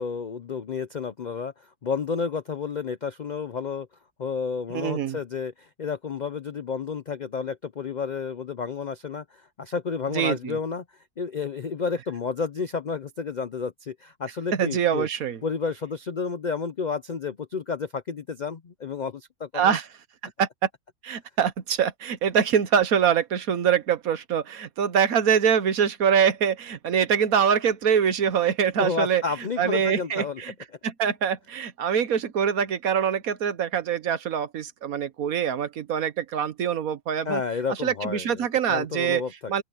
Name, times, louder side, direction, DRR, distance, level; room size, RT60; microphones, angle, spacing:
voice 1, 0.0-3.9 4.2-10.8 11.2-15.1 15.4-19.8 28.8-30.4 37.2-39.5, left 5 dB, 75° left, 0.4 m, -31 dB
voice 2, 4.7-5.2 10.1-10.6 14.5-15.4 19.5-19.9 20.4-20.7 21.0-29.2 29.6-30.5 30.8-37.4 37.7-39.2 39.5-39.6, right 8 dB, 70° right, 1.4 m, -24 dB
open air
omnidirectional pair, 1.6 m